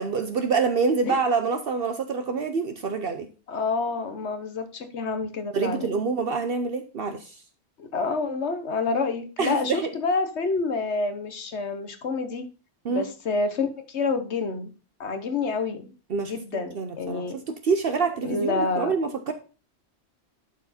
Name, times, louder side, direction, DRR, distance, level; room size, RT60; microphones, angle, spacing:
voice 1, 0.0-3.3 5.5-7.4 9.4-9.9 12.8-13.1 16.1-19.3, right 5 dB, 60° right, 7 dB, 0.9 m, -26 dB
voice 2, 3.5-6.0 7.8-12.4 12.9-14.7 15.0-15.9 16.3-17.3 18.2-18.9, left 4 dB, 90° left, 8 dB, 1.4 m, -28 dB
11.0 x 4.6 x 4.2 m, 0.34 s
omnidirectional pair, 1.1 m